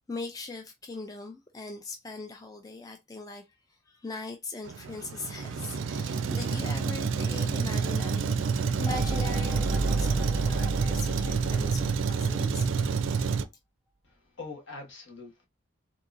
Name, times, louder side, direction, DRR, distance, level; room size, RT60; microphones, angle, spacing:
voice 1, 0.1-12.7, left 3 dB, 15° left, 0.3 m, -40 dB
Truck, 4.7-13.5, right 5 dB, 70° right, 0.4 m, -28 dB
sound 1, 8.9-12.6, right 2 dB, 5° right, 0.8 m, -33 dB
voice 2, 14.0-15.5, left 3 dB, 65° left, 1.2 m, -43 dB
3.7 x 2.7 x 2.5 m
head